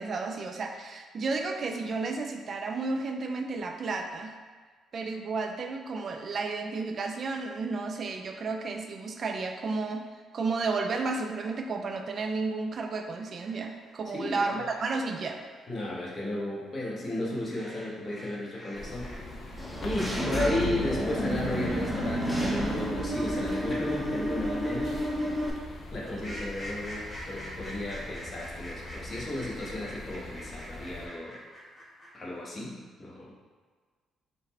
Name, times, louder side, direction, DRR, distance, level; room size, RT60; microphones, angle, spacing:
voice 1, 0.0-4.3 4.9-10.0 10.3-15.4, right 3 dB, 50° right, 4 dB, 0.3 m, -32 dB
sound 1, 13.2-19.2 19.4-32.4, equal, 20° left, 1.2 m, -46 dB
voice 2, 14.1-14.6 15.7-19.1 19.8-24.9 25.9-27.0 27.3-31.4 32.1-33.3, left 1 dB, 35° left, -4 dB, 1.0 m, -34 dB
sound 2, 18.7-31.1, left 1 dB, 50° left, 0.6 m, -43 dB
Engine / Mechanisms, 19.6-25.5, equal, ahead, 0.6 m, -30 dB
4.0 x 2.1 x 4.1 m, 1.5 s
cardioid pair, 90°, 0 cm